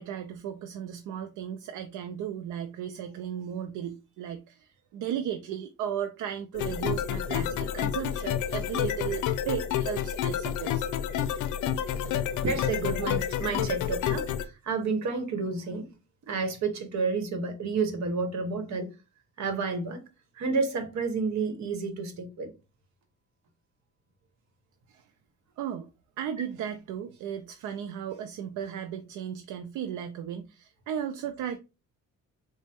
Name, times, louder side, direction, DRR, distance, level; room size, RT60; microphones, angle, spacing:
voice 1, 0.0-10.9 24.9-25.1 25.6-25.9 26.2-31.6, right 9 dB, 80° right, 0.5 m, -35 dB
sound 1, 6.5-14.4, left 9 dB, 85° left, 0.5 m, -29 dB
voice 2, 12.0-15.9 16.3-18.9 19.4-20.0 20.4-22.5, right 4 dB, 65° right, 1.1 m, -30 dB
4.0 x 2.1 x 3.4 m
cardioid pair, 90°, 30 cm